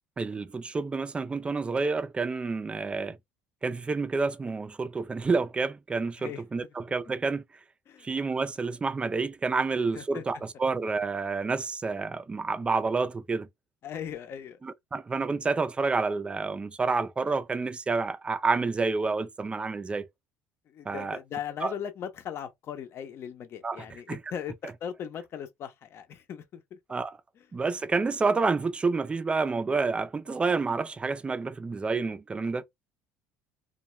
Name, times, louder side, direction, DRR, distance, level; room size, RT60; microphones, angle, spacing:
voice 1, 0.2-3.2 3.6-7.6 8.0-13.5 14.6-20.1 20.8-21.2 21.6-21.7 23.6-24.2 26.9-27.2 27.5-32.6, right 4 dB, 20° right, 0.4 m, -29 dB
voice 2, 13.8-14.6 20.7-26.8, left 8 dB, 50° left, 0.7 m, -38 dB
2.2 x 2.2 x 3.0 m
supercardioid pair, 95°, 5 cm